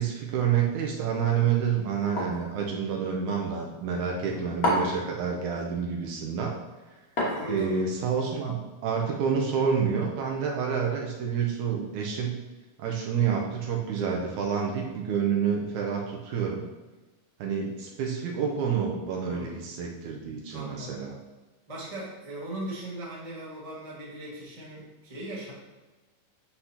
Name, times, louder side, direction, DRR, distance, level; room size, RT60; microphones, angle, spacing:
voice 1, 0.0-6.5 7.5-12.4 12.8-16.7 17.4-21.2, right 7 dB, 75° right, -1 dB, 2.0 m, -28 dB
sound 1, 2.2-2.5 4.6-5.1 7.2-7.8, left 1 dB, 45° left, 1.2 m, -27 dB
voice 2, 7.3-7.8 19.2-19.6 20.5-21.0 21.7-25.5, right 1 dB, 30° right, -6 dB, 0.6 m, -38 dB
9.8 x 4.2 x 2.8 m, 1.2 s
omnidirectional pair, 3.8 m